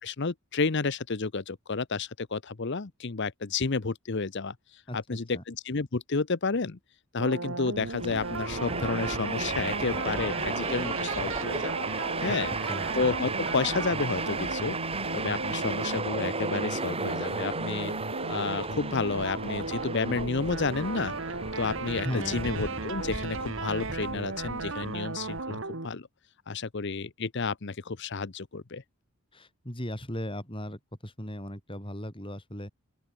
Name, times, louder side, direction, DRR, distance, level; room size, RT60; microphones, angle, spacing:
voice 1, 0.0-4.6 4.9-6.8 7.1-11.9 12.2-12.5 12.9-14.8 15.1-17.9 18.3-21.1 21.6-26.1 26.5-28.8, left 4 dB, 50° left, 0.8 m, -31 dB
voice 2, 4.9-5.4 12.2-12.9 22.0-22.4 29.3-32.7, equal, 25° left, 6.6 m, -37 dB
sound 1, 7.2-25.9, right 3 dB, 60° right, 2.0 m, -36 dB
Train, 7.8-25.4, right 3 dB, 25° right, 2.9 m, -35 dB
open air
head